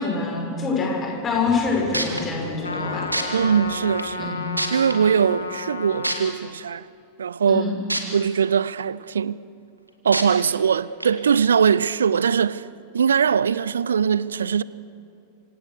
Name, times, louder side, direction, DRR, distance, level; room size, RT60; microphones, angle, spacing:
voice 1, 0.0-3.1 4.2-4.4 7.5-7.7, left 4 dB, 25° left, 6.3 m, -25 dB
sound 1, 1.3-5.8, right 2 dB, 20° right, 5.6 m, -43 dB
sound 2, 1.6-1.7 1.9-2.2 3.1-3.2 4.0-4.1 4.6-4.9 6.0-6.1 7.9-8.0 8.5-8.6 10.1-10.2 11.0-11.1, right 1 dB, 85° right, 2.4 m, -24 dB
Trumpet, 2.6-6.3, left 4 dB, 80° left, 1.9 m, -32 dB
voice 2, 3.3-4.3 4.7-6.9 7.2-7.6 8.1-9.4 10.0-12.7 12.9-14.6, right 7 dB, 70° right, 0.6 m, -21 dB
26.5 x 26.5 x 6.7 m
figure-of-eight pair, 90°, 0 cm